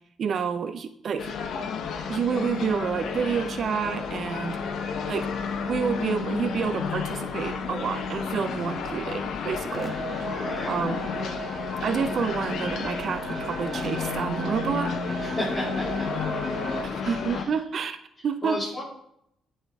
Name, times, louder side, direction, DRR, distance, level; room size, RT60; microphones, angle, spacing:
voice 1, 0.2-1.3 2.1-4.6 5.1-5.3 5.7-10.3 10.7-11.1 11.8-14.9 16.8-18.0 18.2-18.6, right 6 dB, 55° right, 9 dB, 0.4 m, -29 dB
sound 1, 1.2-17.5, left 5 dB, 70° left, 0.7 m, -32 dB
sound 2, 9.7-16.8, right 1 dB, 5° right, 1.5 m, -35 dB
voice 2, 10.4-10.7 15.2-16.1 17.0-17.5 18.4-18.8, left 1 dB, 25° left, -9 dB, 2.0 m, -33 dB
8.8 x 4.3 x 3.4 m, 0.73 s
cardioid pair, 90°, 0 cm